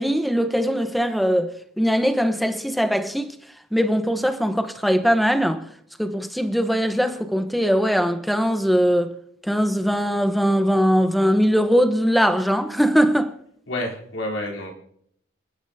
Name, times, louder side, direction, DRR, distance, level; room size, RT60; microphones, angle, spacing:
voice 1, 0.0-1.5 1.8-3.3 3.7-5.7 6.0-9.1 9.5-13.3, equal, ahead, 0.9 m, -21 dB
voice 2, 13.7-14.7, left 1 dB, 75° left, 3.5 m, -29 dB
29.5 x 10.0 x 2.8 m
head